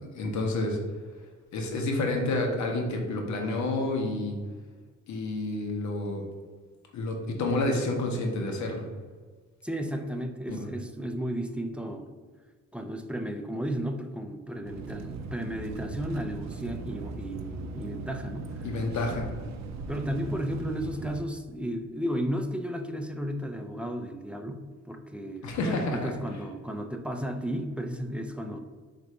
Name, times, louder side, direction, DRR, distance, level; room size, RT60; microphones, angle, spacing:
voice 1, 0.1-0.8 1.5-4.3 5.1-6.2 6.9-8.9 10.5-10.6 18.6-19.3 25.4-26.1, left 2 dB, 70° left, 2 dB, 0.9 m, -29 dB
voice 2, 9.6-12.1 12.7-18.8 19.9-28.6, equal, 5° right, 5 dB, 0.3 m, -34 dB
sound 1, 14.7-21.2, right 3 dB, 65° right, 0.5 m, -39 dB
3.9 x 2.6 x 4.5 m, 1.4 s
cardioid pair, 90°, 30 cm